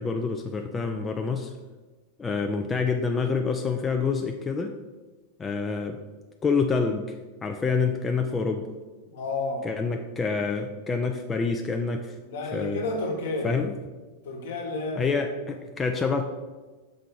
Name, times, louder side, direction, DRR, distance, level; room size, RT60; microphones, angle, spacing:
voice 1, 0.0-1.5 2.2-4.7 5.4-6.0 6.4-7.2 7.4-8.7 9.6-12.1 12.5-12.8 13.4-13.7 15.0-16.2, left 4 dB, 15° left, 4 dB, 0.4 m, -27 dB
voice 2, 9.1-9.7 12.2-13.6 14.2-15.1, left 2 dB, 60° left, 2 dB, 1.2 m, -31 dB
6.1 x 4.5 x 3.9 m, 1.3 s
figure-of-eight pair, 90°, 0 cm